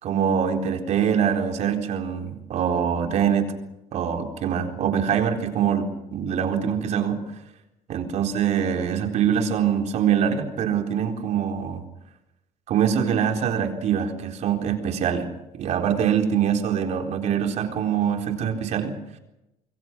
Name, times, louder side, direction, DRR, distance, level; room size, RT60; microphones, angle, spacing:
voice 1, 0.0-3.5 3.9-7.2 7.9-11.8 12.7-15.3 15.6-18.9, right 8 dB, 60° right, 3 dB, 4.1 m, -24 dB
26.5 x 22.5 x 6.3 m, 0.91 s
cardioid pair, 115°, 13 cm